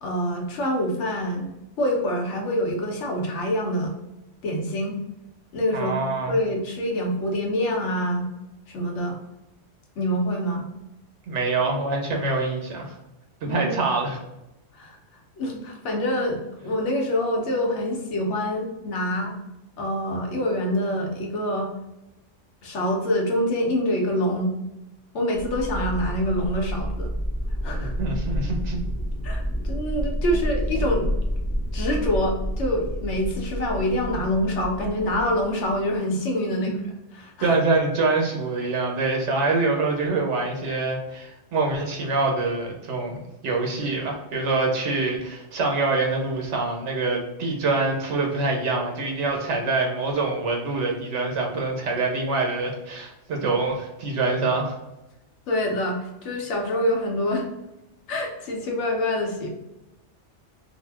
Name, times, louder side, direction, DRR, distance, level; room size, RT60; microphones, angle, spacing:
voice 1, 0.0-1.5 1.8-4.0 4.4-5.0 5.5-5.9 6.2-8.3 8.7-9.2 10.0-10.7 13.5-13.7 14.7-15.0 15.4-19.3 19.8-21.7 22.6-24.5 25.1-27.1 27.6-27.9 29.2-31.1 31.7-37.6 55.5-57.5 58.1-59.5, left 1 dB, 75° left, 1 dB, 1.0 m, -26 dB
voice 2, 5.7-6.3 11.3-13.0 13.4-14.2 27.8-28.8 36.5-36.9 37.4-54.8, right 3 dB, 75° right, 1 dB, 1.0 m, -25 dB
sound 1, 25.3-36.0, equal, 30° left, 0.4 m, -29 dB
2.6 x 2.1 x 3.2 m, 0.95 s
omnidirectional pair, 1.2 m